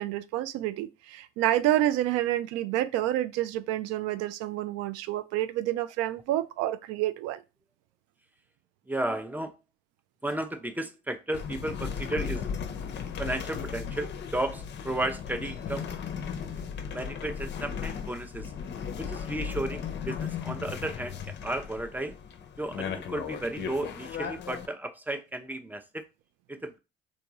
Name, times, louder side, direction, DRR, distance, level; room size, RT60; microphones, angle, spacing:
voice 1, 0.0-7.4, right 14 dB, 55° right, 0.4 m, -28 dB
voice 2, 8.9-9.5 10.2-12.5 13.2-15.9 16.9-18.5 19.0-22.2 22.6-26.0 26.5-26.8, right 1 dB, 5° right, 0.5 m, -34 dB
sound 1, 11.3-24.7, left 7 dB, 40° left, 0.6 m, -36 dB
3.4 x 2.7 x 3.0 m
figure-of-eight pair, 50°, 29 cm